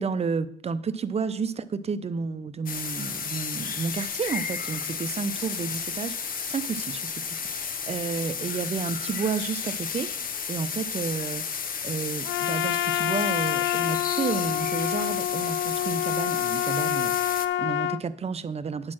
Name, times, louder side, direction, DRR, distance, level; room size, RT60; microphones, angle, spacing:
voice 1, 0.0-10.1 10.5-11.5 11.8-18.9, right 5 dB, 30° right, 13 dB, 0.6 m, -31 dB
sound 1, 2.7-17.5, left 6 dB, 45° left, 0.7 m, -33 dB
Trumpet, 12.2-18.0, left 13 dB, 75° left, 0.4 m, -27 dB
9.6 x 4.2 x 7.5 m, 0.67 s
cardioid pair, 90°, 20 cm